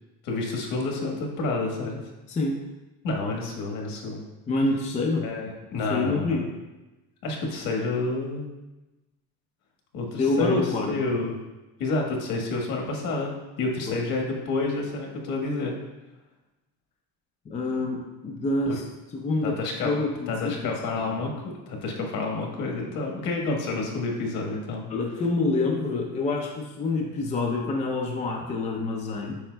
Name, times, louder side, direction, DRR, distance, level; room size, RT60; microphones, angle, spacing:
voice 1, 0.2-2.0 3.0-4.2 5.2-6.4 7.2-8.5 9.9-11.3 11.8-13.3 13.6-15.8 18.6-18.8 19.4-19.9 20.3-24.8, left 3 dB, 65° left, 1 dB, 1.5 m, -29 dB
voice 2, 2.3-2.6 4.5-5.5 5.9-6.5 10.2-11.1 13.9-14.0 17.5-18.8 19.1-19.6 19.8-21.1 24.9-29.3, left 3 dB, 20° left, 0 dB, 0.5 m, -27 dB
8.6 x 5.7 x 2.2 m, 1.1 s
cardioid pair, 170°, 36 cm